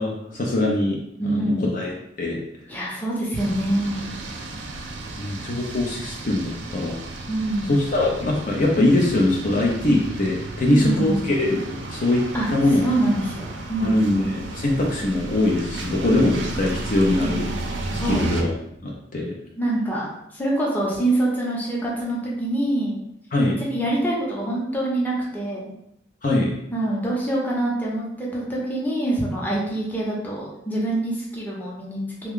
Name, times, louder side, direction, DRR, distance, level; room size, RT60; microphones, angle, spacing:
voice 1, 0.0-1.9 2.2-2.4 5.2-7.0 7.7-12.2 12.5-12.9 13.8-17.5 18.1-18.5 18.8-19.3 23.3-23.6 26.2-26.5, left 1 dB, 45° left, -2 dB, 0.5 m, -22 dB
voice 2, 1.2-1.7 2.7-4.0 7.3-7.7 10.6-11.2 12.3-12.5 12.8-14.4 17.2-17.5 18.0-18.3 19.6-20.1 20.3-23.0 23.6-25.7 26.7-32.3, right 1 dB, 10° left, -5 dB, 0.7 m, -25 dB
sound 1, 3.4-18.4, right 2 dB, 75° right, 0.5 m, -33 dB
3.3 x 2.2 x 3.6 m, 0.79 s
head